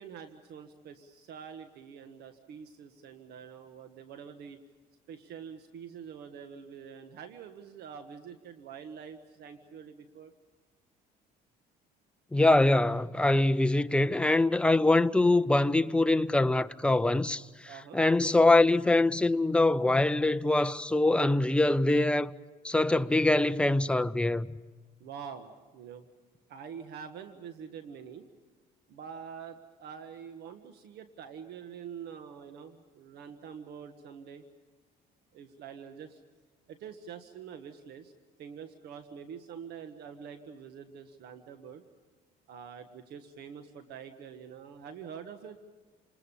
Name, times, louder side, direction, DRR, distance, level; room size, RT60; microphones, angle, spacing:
voice 1, 0.0-4.6 5.1-10.3 17.6-18.0 25.0-26.1 26.5-28.3 28.9-34.4 35.3-36.2 36.7-38.1 38.4-41.8 42.5-45.6, right 7 dB, 75° right, 1.5 m, -46 dB
voice 2, 12.3-17.4 17.9-22.3 22.6-24.5, left 2 dB, 5° left, 0.7 m, -24 dB
28.5 x 20.5 x 7.1 m
cardioid pair, 110°, 17 cm